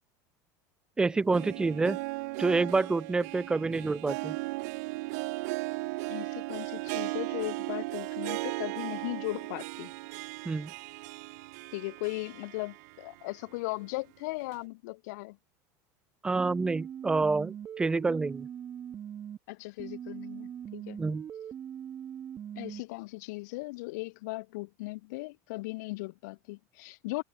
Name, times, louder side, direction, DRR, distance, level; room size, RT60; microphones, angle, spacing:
voice 1, 1.0-2.0 2.4-4.4 10.5-10.7 16.2-18.5 21.0-21.2, right 3 dB, 10° right, 0.6 m, -28 dB
Harp, 1.1-13.2 13.6-13.7 14.5-14.6, right 25 dB, 70° right, 4.0 m, -37 dB
voice 2, 6.1-9.9 11.7-15.4 19.5-21.0 22.6-27.2, left 23 dB, 75° left, 1.8 m, -38 dB
sound 1, 16.4-19.4 19.8-22.8, right 9 dB, 25° right, 1.4 m, -41 dB
cardioid pair, 170°, 9 cm